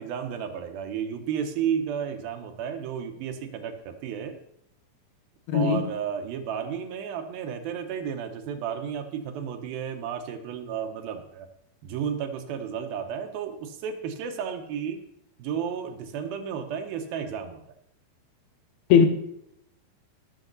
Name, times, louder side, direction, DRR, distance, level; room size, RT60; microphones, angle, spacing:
voice 1, 0.0-4.4 5.5-11.5 11.8-15.0 15.4-17.6, right 8 dB, 75° right, 2.8 m, -32 dB
voice 2, 5.5-5.9 18.9-19.1, left 7 dB, 85° left, 3.0 m, -18 dB
19.0 x 7.0 x 4.0 m
omnidirectional pair, 4.3 m